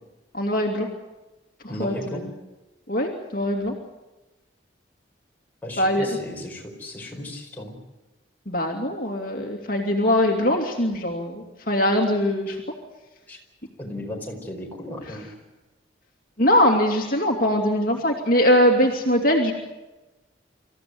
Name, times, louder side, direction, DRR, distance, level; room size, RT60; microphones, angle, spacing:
voice 1, 0.3-0.9 1.8-2.2 2.9-3.7 5.8-6.1 8.5-12.6 16.4-19.5, left 1 dB, 45° left, 1 dB, 2.7 m, -21 dB
voice 2, 1.7-2.2 5.6-7.8 12.5-12.6 13.3-13.4 13.8-15.3, left 1 dB, 10° left, -1 dB, 4.8 m, -35 dB
26.5 x 15.0 x 9.5 m, 1.1 s
head